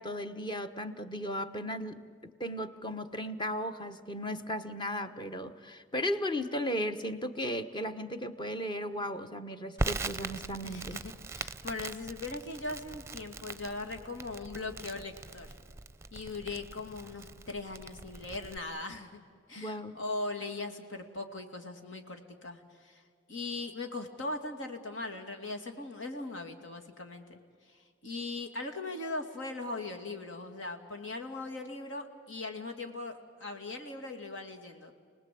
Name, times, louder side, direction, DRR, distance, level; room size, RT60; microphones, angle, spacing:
voice 1, 0.0-11.0 19.6-20.0, equal, 25° left, 9 dB, 1.2 m, -36 dB
Crackle, 9.8-18.6, right 3 dB, 15° right, 0.7 m, -41 dB
voice 2, 10.6-15.5 16.1-19.2 19.5-23.0 23.3-27.4 27.7-34.9, left 2 dB, 75° left, 4 dB, 2.5 m, -39 dB
29.5 x 19.5 x 8.6 m, 2.1 s
head